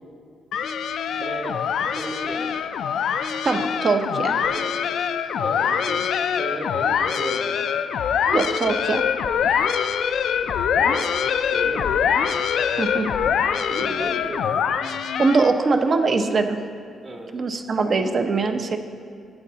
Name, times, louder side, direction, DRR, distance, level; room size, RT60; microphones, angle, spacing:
sound 1, 0.5-15.7, left 7 dB, 80° left, 0.3 m, -24 dB
voice 1, 1.1-1.6 1.9-2.6 4.3-4.7 5.2-7.6 10.3-11.1 11.5-11.9 13.7-14.5 17.0-17.5, right 2 dB, 65° right, -4 dB, 1.8 m, -35 dB
voice 2, 3.4-4.3 8.3-9.0 12.8-13.1 15.2-16.6 17.3-18.8, right 4 dB, 50° right, 6 dB, 0.7 m, -22 dB
13.0 x 8.3 x 2.8 m, 2.3 s
cardioid pair, 80°, 0 cm